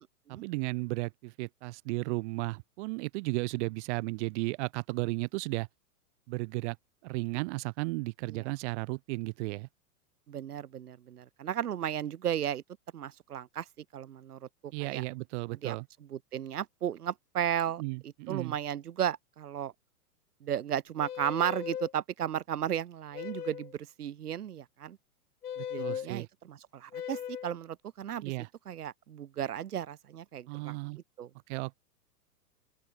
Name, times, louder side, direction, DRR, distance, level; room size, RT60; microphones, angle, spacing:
voice 1, 0.3-5.7 6.3-6.8 7.0-9.7 14.7-15.8 17.8-18.5 25.6-26.3 28.2-28.5 30.5-31.0 31.5-31.8, right 25 dB, 50° right, 2.3 m, -34 dB
voice 2, 10.3-12.6 12.9-15.0 15.6-19.7 20.4-25.0 25.7-28.3 28.7-30.7 31.2-31.3, right 10 dB, 80° right, 2.6 m, -35 dB
sound 1, 21.0-21.9 23.1-23.7 25.4-26.1 26.9-27.6, left 9 dB, 80° left, 4.1 m, -38 dB
open air
hypercardioid pair, 120°, 45 cm